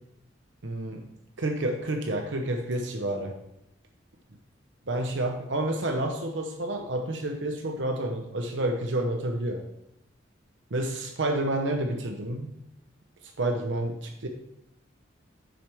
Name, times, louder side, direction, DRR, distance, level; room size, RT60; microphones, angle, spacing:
voice 1, 0.6-1.0 1.4-3.4 4.9-9.6 10.7-12.6 13.4-14.3, right 1 dB, 70° right, 3 dB, 0.9 m, -29 dB
9.9 x 6.5 x 3.5 m, 0.81 s
head